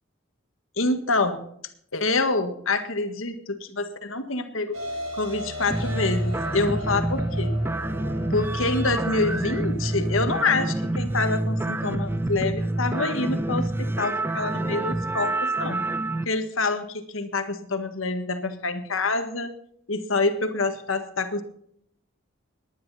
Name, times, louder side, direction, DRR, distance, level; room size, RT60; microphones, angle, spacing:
voice 1, 0.8-1.4 1.9-4.8 5.1-7.5 8.3-15.9 16.2-19.5 19.9-21.4, left 3 dB, 80° left, 8 dB, 1.7 m, -26 dB
sound 1, 4.7-10.3, equal, 90° right, 4.8 m, -36 dB
sound 2, 5.7-16.2, right 2 dB, 10° right, 0.5 m, -27 dB
19.5 x 10.5 x 4.2 m, 0.69 s
head